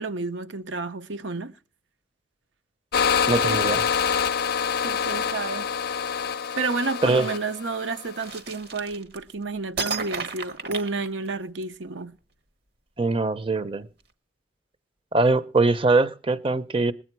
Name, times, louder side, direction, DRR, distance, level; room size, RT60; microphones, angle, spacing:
voice 1, 0.0-1.5 3.4-3.6 4.8-5.7 6.6-12.2, right 3 dB, 75° right, 0.9 m, -31 dB
sound 1, 2.9-8.4, left 7 dB, 55° left, 0.5 m, -26 dB
voice 2, 3.3-3.8 7.0-7.3 13.0-13.9 15.1-16.9, right 3 dB, 30° right, 0.7 m, -22 dB
sound 2, 8.2-9.3 9.8-11.6, right 4 dB, 55° right, 1.2 m, -33 dB
20.5 x 8.6 x 4.6 m
head